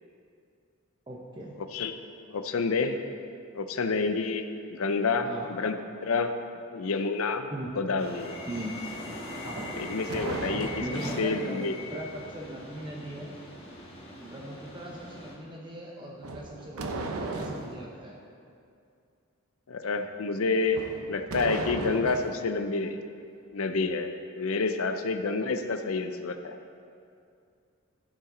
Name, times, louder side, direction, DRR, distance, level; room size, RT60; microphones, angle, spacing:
voice 1, 1.1-1.6 5.2-5.5 7.5-7.7 8.5-8.7 9.4-9.7 10.8-13.3 14.2-18.2, right 1 dB, 20° right, -2 dB, 0.7 m, -39 dB
voice 2, 1.6-1.9 2.3-3.0 3.5-5.8 6.0-6.3 6.7-7.5 7.8-8.3 9.7-10.8 11.2-11.7 19.7-20.8 21.1-23.0 23.5-26.6, left 4 dB, 80° left, 8 dB, 0.6 m, -29 dB
sound 1, 8.0-15.3, left 1 dB, 25° left, 1.6 m, -41 dB
sound 2, 9.5-11.3 16.2-17.8 20.7-22.4, right 2 dB, 85° right, 0.8 m, -36 dB
14.0 x 5.8 x 3.8 m, 2.4 s
head